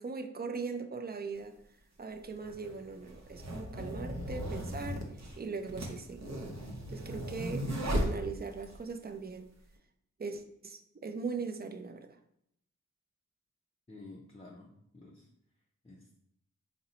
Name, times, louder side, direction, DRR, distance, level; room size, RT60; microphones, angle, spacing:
voice 1, 0.0-1.5 2.0-5.0 5.4-6.2 6.9-7.7 8.0-9.5 10.2-12.2, right 4 dB, 35° right, 7 dB, 0.4 m, -40 dB
sound 1, 1.3-1.4 2.4-8.8, equal, 60° right, 0.7 m, -36 dB
voice 2, 13.9-15.3 15.8-16.2, left 2 dB, 20° left, -4 dB, 0.5 m, -51 dB
4.1 x 2.0 x 3.8 m, 0.75 s
wide cardioid pair, 50°, 30 cm